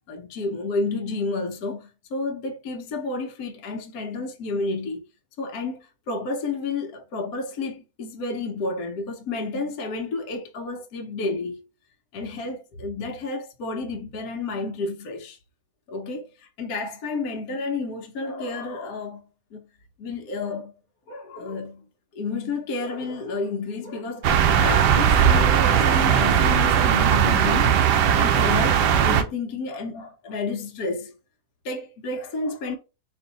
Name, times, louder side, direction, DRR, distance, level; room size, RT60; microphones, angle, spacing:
voice 1, 0.1-5.1 5.4-11.7 12.1-15.4 15.9-16.3 16.6-19.2 19.5-19.7 20.0-20.7 21.1-21.9 22.1-31.2 31.6-32.8, left 3 dB, 65° left, 1.2 m, -31 dB
sound 1, 24.2-29.2, right 8 dB, 85° right, 1.2 m, -18 dB
4.5 x 2.6 x 3.9 m
omnidirectional pair, 1.8 m